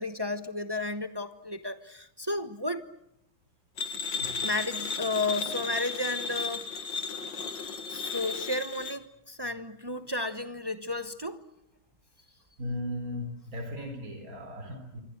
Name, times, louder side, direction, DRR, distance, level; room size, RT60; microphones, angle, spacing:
voice 1, 0.0-2.9 4.4-6.7 7.9-11.4, left 2 dB, 20° right, 0.7 m, -33 dB
sound 1, 3.8-9.0, left 5 dB, 65° left, 2.4 m, -34 dB
voice 2, 4.2-4.5 12.6-15.0, left 1 dB, 45° right, 4.4 m, -37 dB
27.0 x 25.5 x 8.0 m
omnidirectional pair, 2.2 m